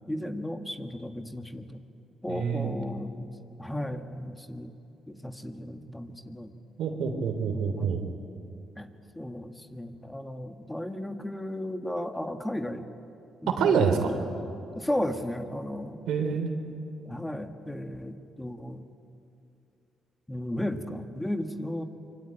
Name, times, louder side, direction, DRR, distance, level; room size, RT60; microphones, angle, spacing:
voice 1, 0.0-1.8 2.2-3.3 3.6-4.7 5.1-6.5 7.7-8.0 8.8-8.9 9.1-12.9 13.4-13.9 14.7-16.1 16.7-16.8 17.0-18.8 20.3-21.8, left 1 dB, 10° left, 7 dB, 1.6 m, -35 dB
voice 2, 2.3-2.8 6.8-8.0 13.6-14.1 16.1-16.5, right 6 dB, 80° right, 6 dB, 3.3 m, -26 dB
25.5 x 24.0 x 9.1 m, 2.7 s
cardioid pair, 90°, 0 cm